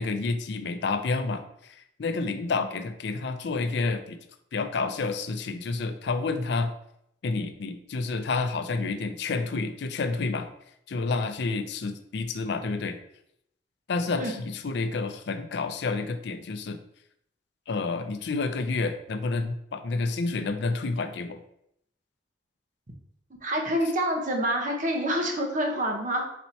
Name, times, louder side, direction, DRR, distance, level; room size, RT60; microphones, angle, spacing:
voice 1, 0.0-1.4 1.7-4.2 4.5-6.7 7.2-10.5 10.9-13.0 13.9-16.8 17.7-21.4, left 3 dB, 65° left, 9 dB, 0.4 m, -29 dB
voice 2, 23.4-26.2, equal, 45° right, 2 dB, 0.9 m, -27 dB
4.2 x 2.8 x 4.4 m, 0.75 s
head